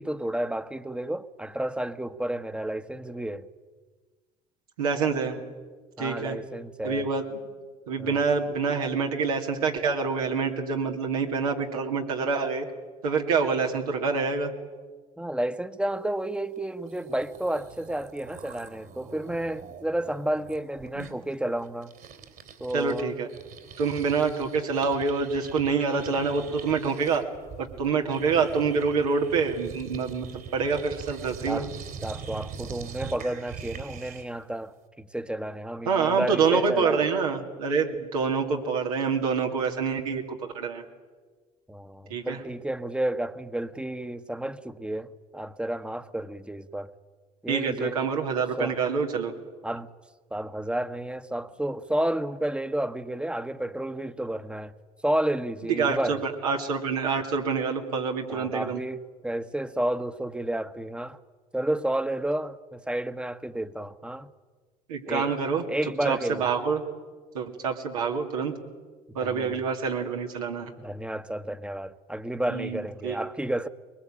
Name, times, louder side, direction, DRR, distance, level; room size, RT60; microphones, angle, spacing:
voice 1, 0.0-3.5 6.0-7.1 8.0-8.2 15.2-21.9 22.6-23.2 31.5-31.7 32.0-37.1 41.7-46.9 47.4-48.1 48.6-48.8 49.6-49.9 50.3-54.7 55.0-56.2 58.3-61.2 61.5-64.3 65.1-65.3 65.7-66.5 69.2-69.6 70.8-73.7, right 1 dB, 5° right, 1.3 m, -31 dB
voice 2, 4.8-5.4 6.0-6.4 6.8-7.4 7.9-12.7 13.0-14.5 20.9-21.1 22.7-23.3 23.8-27.2 27.6-31.6 35.9-40.8 42.1-42.4 47.5-49.3 55.7-58.8 64.9-65.6 66.0-66.8 67.3-68.5 69.1-70.7 72.5-73.2, right 5 dB, 85° right, 2.6 m, -26 dB
sound 1, 16.6-16.7 16.8-23.0 23.3-34.4, right 6 dB, 55° right, 3.3 m, -43 dB
22.5 x 20.5 x 8.9 m
hypercardioid pair, 55°, 18 cm